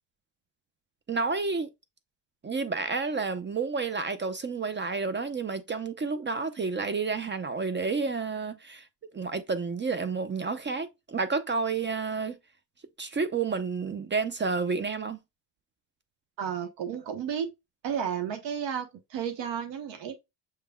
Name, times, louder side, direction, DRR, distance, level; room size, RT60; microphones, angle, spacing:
voice 1, 1.1-1.7 2.4-8.9 9.1-12.4 13.0-15.2, right 4 dB, 25° right, 0.5 m, -30 dB
voice 2, 16.4-17.5 17.8-20.1, right 8 dB, 70° right, 1.0 m, -32 dB
6.6 x 3.5 x 2.2 m
supercardioid pair, 90°, 46 cm